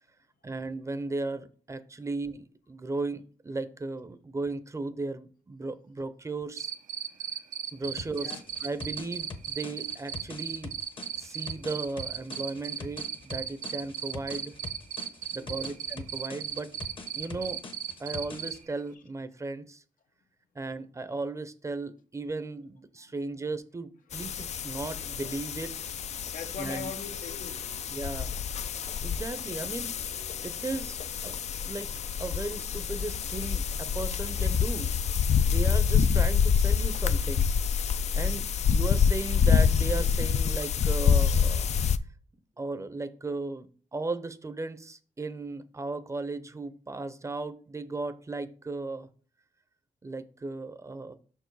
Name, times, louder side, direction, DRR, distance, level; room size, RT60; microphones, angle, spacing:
voice 1, 0.4-6.7 7.7-8.3 8.6-10.8 11.2-14.5 15.3-16.7 17.1-17.6 18.0-19.8 20.5-25.7 26.6-26.9 27.9-28.4 29.0-30.0 30.4-31.0 31.2-31.9 32.2-34.9 35.4-37.5 38.1-38.5 38.7-41.7 42.6-49.1 50.0-51.2, right 3 dB, 20° right, 0.6 m, -36 dB
Cricket, 6.6-18.5, right 8 dB, 85° right, 0.7 m, -35 dB
sound 1, 8.0-18.6, left 3 dB, 40° left, 0.9 m, -44 dB
voice 2, 15.4-15.8 23.0-23.1 26.3-27.6, left 6 dB, 80° left, 1.1 m, -41 dB
sound 2, 24.1-42.0, left 7 dB, 55° left, 0.4 m, -27 dB
6.0 x 4.6 x 4.7 m
cardioid pair, 115°, 14 cm